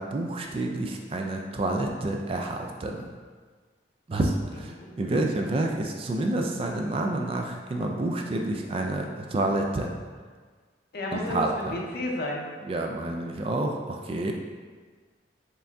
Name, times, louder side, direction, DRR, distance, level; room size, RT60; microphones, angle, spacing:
voice 1, 0.0-3.1 4.1-9.9 11.1-11.8 12.6-14.3, right 2 dB, 30° right, 2 dB, 0.3 m, -29 dB
voice 2, 10.9-12.5, left 1 dB, 55° left, -1 dB, 0.6 m, -32 dB
4.5 x 2.6 x 3.4 m, 1.5 s
head